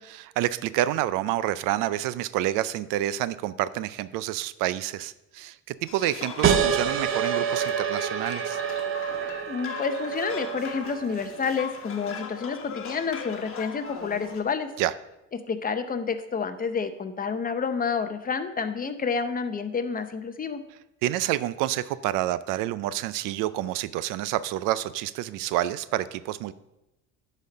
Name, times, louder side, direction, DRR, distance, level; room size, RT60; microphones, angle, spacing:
voice 1, 0.0-8.6 14.8-14.9 21.0-26.5, right 14 dB, 85° right, 16 dB, 0.5 m, -28 dB
sound 1, 5.9-14.4, left 5 dB, 45° left, 1.3 m, -39 dB
sound 2, 6.4-11.6, right 7 dB, 40° right, 0.7 m, -27 dB
voice 2, 9.5-14.7 15.3-20.6, left 5 dB, 25° left, 10 dB, 0.7 m, -29 dB
10.5 x 4.2 x 5.1 m, 0.92 s
cardioid pair, 105°, 32 cm